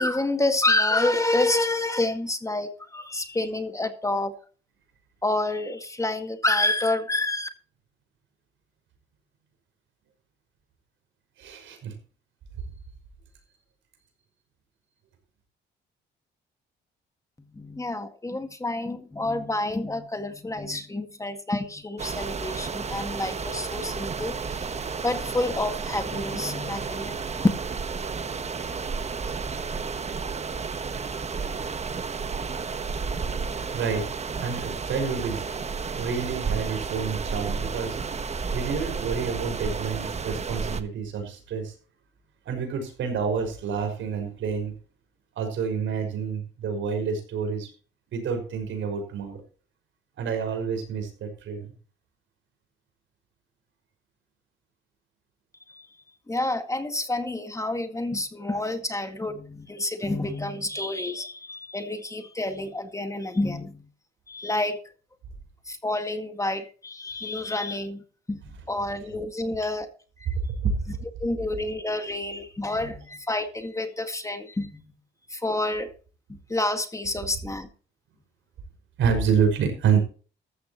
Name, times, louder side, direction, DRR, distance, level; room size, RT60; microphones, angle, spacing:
voice 1, 0.0-4.3 5.2-7.5 17.5-24.7 25.0-27.2 55.7-55.9 56.3-63.8 64.3-64.8 65.7-68.4 68.7-69.9 70.2-70.3 70.9-74.8 75.3-75.9 76.3-77.7, left 2 dB, 15° left, 7 dB, 1.9 m, -28 dB
voice 2, 11.4-12.0 33.7-34.1 34.4-35.5 36.0-38.0 38.3-41.7 42.5-44.7 45.4-47.7 48.1-49.4 50.2-51.7 70.4-70.7 79.0-80.0, right 6 dB, 75° right, 5 dB, 5.7 m, -28 dB
sound 1, 22.0-40.8, right 5 dB, 35° right, 1.2 m, -32 dB
14.5 x 13.0 x 3.1 m, 0.38 s
cardioid pair, 90°, 20 cm